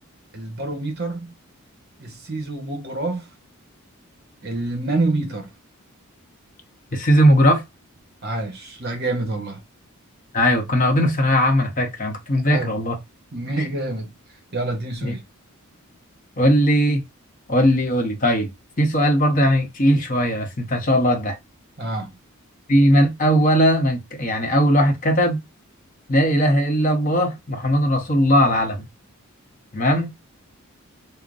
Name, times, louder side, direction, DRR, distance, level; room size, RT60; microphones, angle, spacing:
voice 1, 0.3-1.3 2.0-3.3 4.4-5.5 8.2-9.6 12.4-12.8 13.3-14.1 14.5-15.2 21.8-22.2, right 2 dB, 45° right, 1.1 m, -27 dB
voice 2, 6.9-7.6 10.3-13.0 15.0-15.1 16.4-17.0 17.5-18.5 18.8-21.4 22.7-25.4 26.1-28.9 29.7-30.1, equal, 35° left, 0.9 m, -18 dB
5.2 x 2.1 x 2.5 m
head